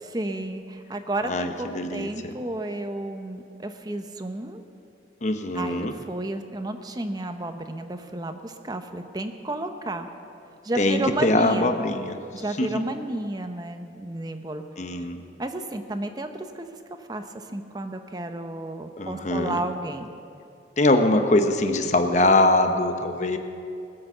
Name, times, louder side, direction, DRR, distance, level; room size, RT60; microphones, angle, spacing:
voice 1, 0.0-4.6 5.5-10.1 10.6-11.7 12.3-14.6 15.4-16.7 17.1-20.1, right 2 dB, 20° right, 7 dB, 0.8 m, -32 dB
voice 2, 1.2-2.3 5.2-6.0 10.8-12.2 12.6-12.8 14.8-15.2 19.0-19.6 20.8-23.4, left 2 dB, 40° left, 6 dB, 0.9 m, -22 dB
19.5 x 7.7 x 6.7 m, 2.5 s
head